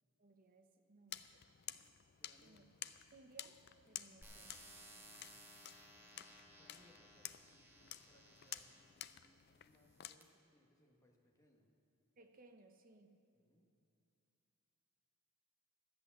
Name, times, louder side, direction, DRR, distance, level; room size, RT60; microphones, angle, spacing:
voice 1, 0.2-1.5 2.4-2.7 3.1-3.6 3.8-4.5 12.2-13.1, right 3 dB, 40° right, 6 dB, 0.8 m, -63 dB
sound 1, 1.1-10.2, left 12 dB, 45° left, 0.3 m, -53 dB
voice 2, 2.2-2.9 4.3-4.6 6.6-11.7 13.3-13.7, left 1 dB, 15° left, 1 dB, 1.1 m, -72 dB
sound 2, 4.2-9.0 9.7-10.2, right 1 dB, 10° right, 0.9 m, -60 dB
12.5 x 8.2 x 7.0 m, 2.6 s
head